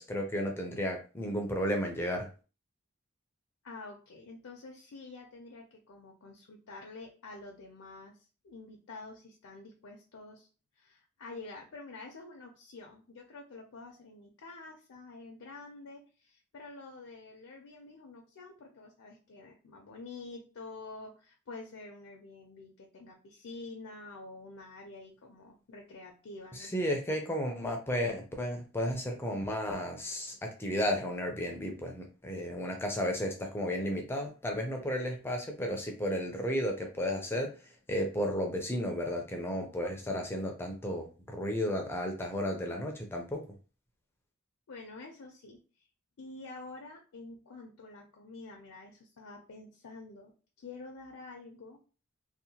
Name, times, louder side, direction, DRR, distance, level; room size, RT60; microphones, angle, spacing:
voice 1, 0.0-2.3 26.5-43.4, equal, 10° left, 2 dB, 0.4 m, -33 dB
voice 2, 3.6-10.5 10.8-26.7 44.7-45.9 46.2-51.8, left 3 dB, 85° left, 1 dB, 0.5 m, -48 dB
2.7 x 2.1 x 2.8 m, 0.36 s
head